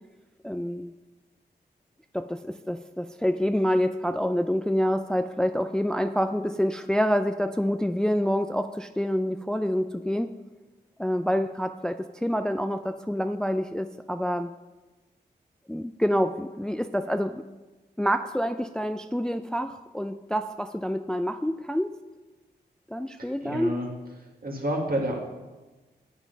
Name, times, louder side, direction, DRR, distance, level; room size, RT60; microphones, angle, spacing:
voice 1, 0.4-0.9 2.1-10.3 11.0-14.5 15.7-17.4 18.0-21.9 22.9-23.7, equal, 5° left, 9 dB, 0.4 m, -27 dB
voice 2, 23.2-23.9 24.4-25.2, right 1 dB, 55° right, 0 dB, 1.9 m, -29 dB
7.3 x 6.6 x 5.2 m, 1.2 s
cardioid pair, 40°, 18 cm